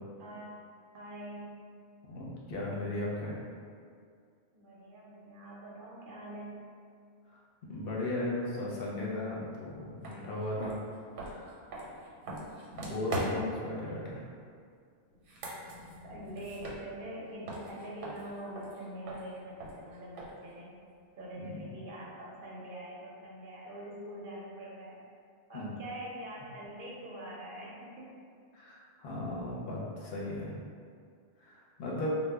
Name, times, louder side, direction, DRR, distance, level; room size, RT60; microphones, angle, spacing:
voice 1, 0.2-0.6 0.9-1.8 4.5-6.7 15.1-15.2 16.0-20.8 21.2-25.0 25.5-28.2, right 1 dB, 60° right, -5 dB, 0.6 m, -44 dB
voice 2, 2.1-3.4 7.3-10.7 11.2-11.6 12.8-14.2 21.4-21.7 25.5-25.8 28.5-30.5 31.4-32.1, left 1 dB, 60° left, -5 dB, 0.7 m, -36 dB
sound 1, 10.0-10.2 10.6-13.6 15.1-17.2 17.5-20.5, right 1 dB, 85° right, 0.9 m, -41 dB
2.1 x 2.1 x 3.4 m, 2.2 s
omnidirectional pair, 1.2 m